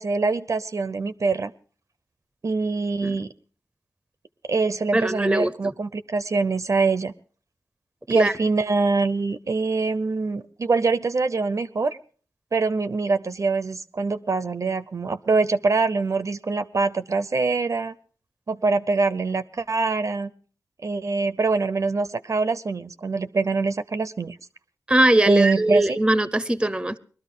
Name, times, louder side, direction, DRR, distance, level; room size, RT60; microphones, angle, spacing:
voice 1, 0.0-1.5 2.4-3.3 4.4-7.1 8.1-12.0 12.5-17.9 18.5-20.3 20.8-24.4 25.3-26.0, right 3 dB, 50° right, 13 dB, 0.5 m, -24 dB
voice 2, 4.9-5.7 8.1-8.3 24.9-27.0, right 1 dB, 15° right, 15 dB, 0.6 m, -21 dB
20.5 x 12.5 x 3.7 m, 0.42 s
wide cardioid pair, 70°, 7 cm